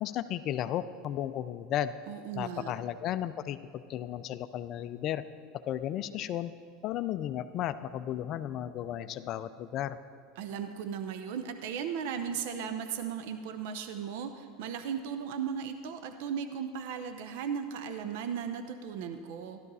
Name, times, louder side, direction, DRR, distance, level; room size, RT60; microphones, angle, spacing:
voice 1, 0.0-1.9 2.3-5.2 5.7-6.5 6.8-10.0, left 11 dB, 50° left, 12 dB, 0.4 m, -34 dB
voice 2, 2.1-2.7 10.4-19.6, right 7 dB, 70° right, 8 dB, 0.7 m, -36 dB
13.0 x 12.0 x 4.1 m, 2.2 s
supercardioid pair, 105°, 0 cm